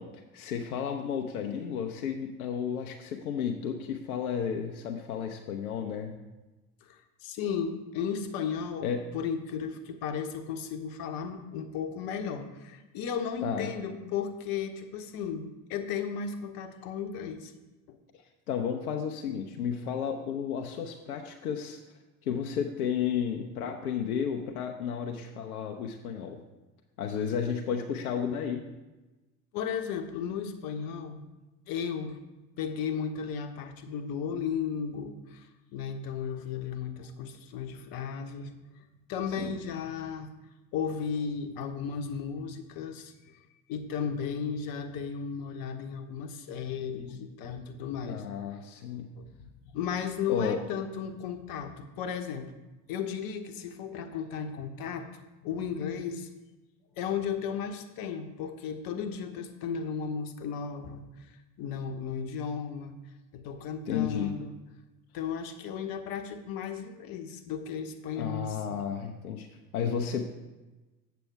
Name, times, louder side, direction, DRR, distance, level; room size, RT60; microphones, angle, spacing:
voice 1, 0.0-6.2 8.8-9.0 13.4-13.7 18.5-21.8 22.2-26.4 27.0-28.6 39.4-39.5 48.1-49.1 50.3-50.6 63.9-64.3 68.2-69.5 69.7-70.2, left 7 dB, 75° left, 3 dB, 0.7 m, -32 dB
voice 2, 6.8-17.5 17.9-18.0 29.5-31.2 31.7-32.2 32.6-38.8 39.1-40.3 40.7-43.4 43.7-48.2 49.1-52.5 52.9-55.1 55.4-56.3 57.0-63.0 63.3-64.5 65.1-68.8, left 7 dB, 50° left, 7 dB, 1.0 m, -35 dB
8.2 x 6.9 x 4.6 m, 1.1 s
figure-of-eight pair, 65°, 44 cm